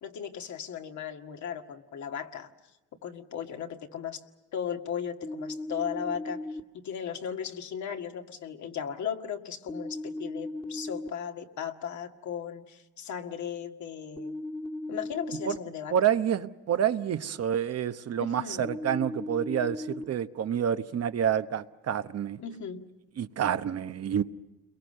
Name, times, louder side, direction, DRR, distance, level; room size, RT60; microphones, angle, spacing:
voice 1, 0.0-2.5 3.0-4.2 4.5-6.4 6.7-14.4 14.9-16.0 18.2-18.7 22.4-22.9, left 8 dB, 70° left, 2.0 m, -36 dB
sound 1, 5.2-6.6 9.7-11.1 14.2-15.6 18.6-20.0, left 2 dB, 15° left, 1.7 m, -37 dB
voice 2, 15.9-22.4 23.2-24.2, right 9 dB, 55° right, 1.0 m, -28 dB
29.5 x 22.5 x 6.7 m
cardioid pair, 90°, 30 cm